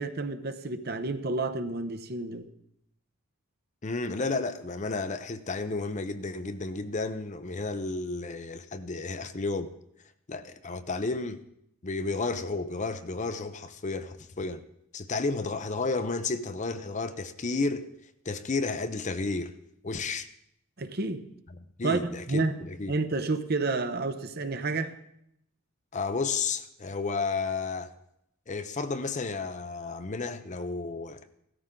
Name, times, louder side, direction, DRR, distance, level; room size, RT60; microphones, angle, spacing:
voice 1, 0.0-2.5 20.8-21.2 21.8-22.6 22.9-24.9, right 3 dB, 50° right, 0.9 m, -30 dB
voice 2, 3.8-9.7 10.3-11.4 11.8-14.6 14.9-17.9 18.2-19.5 19.8-20.3 21.8-22.9 25.9-27.9 28.5-31.2, left 3 dB, 35° left, 0.6 m, -32 dB
16.5 x 13.5 x 3.8 m
head